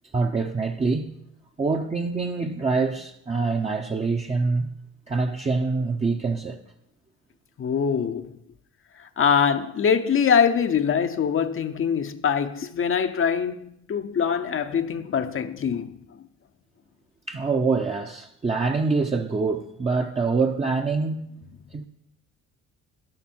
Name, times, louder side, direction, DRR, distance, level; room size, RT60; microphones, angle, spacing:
voice 1, 0.1-1.2 1.6-4.7 5.1-6.6 17.3-21.4 21.7-21.9, right 4 dB, 20° right, 0.7 m, -25 dB
voice 2, 7.6-8.4 9.0-16.0, left 7 dB, 40° left, 0.7 m, -23 dB
13.5 x 11.0 x 4.5 m
cardioid pair, 100°, 32 cm